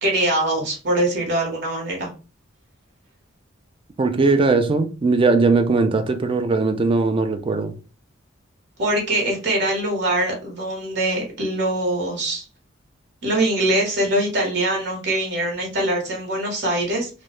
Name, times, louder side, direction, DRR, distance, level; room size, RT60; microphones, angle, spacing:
voice 1, 0.0-2.1 8.8-12.4 13.2-17.1, right 1 dB, 60° right, 0.9 m, -23 dB
voice 2, 4.0-7.7, right 3 dB, 25° right, 0.3 m, -19 dB
2.3 x 2.0 x 2.9 m
head